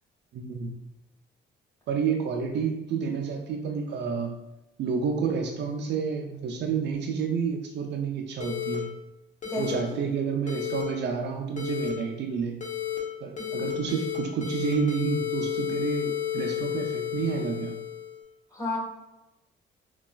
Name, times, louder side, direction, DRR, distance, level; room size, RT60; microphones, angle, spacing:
voice 1, 0.3-0.7 1.9-4.4 4.8-8.9 9.6-12.6 13.2-17.8, right 6 dB, 60° right, 3 dB, 0.4 m, -29 dB
sound 1, 8.4-8.8 9.4-9.7 10.5-10.8 11.6-11.9 12.6-13.0 13.4-14.2 14.4-18.1, left 11 dB, 40° left, 0.8 m, -32 dB
voice 2, 9.4-9.6 9.9-10.0 13.4-13.5 18.5-18.8, left 2 dB, 20° left, -5 dB, 1.3 m, -32 dB
3.8 x 2.3 x 2.3 m, 0.95 s
cardioid pair, 90°, 20 cm